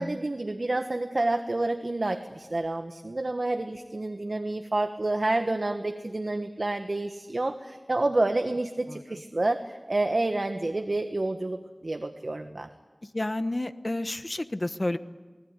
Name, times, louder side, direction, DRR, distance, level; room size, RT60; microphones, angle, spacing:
voice 1, 0.0-12.7, right 2 dB, 65° right, 6 dB, 1.5 m, -29 dB
voice 2, 8.9-9.2 13.1-15.0, left 1 dB, 45° left, 11 dB, 1.2 m, -31 dB
29.5 x 19.5 x 9.8 m, 1.3 s
wide cardioid pair, 50°, 0 cm